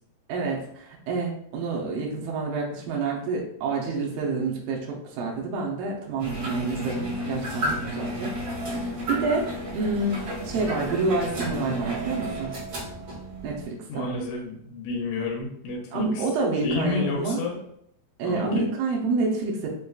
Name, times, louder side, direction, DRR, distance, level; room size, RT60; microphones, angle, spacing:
voice 1, 0.3-8.3 8.8-9.5 9.7-12.5 13.4-14.2 15.9-17.4 18.2-19.7, right 3 dB, 90° right, -2 dB, 1.9 m, -28 dB
sound 1, 6.2-13.6, equal, 70° right, 1.3 m, -32 dB
voice 2, 13.9-16.3 16.6-17.6 18.2-18.7, left 3 dB, 85° left, -1 dB, 2.8 m, -30 dB
6.6 x 2.4 x 2.2 m, 0.71 s
omnidirectional pair, 4.8 m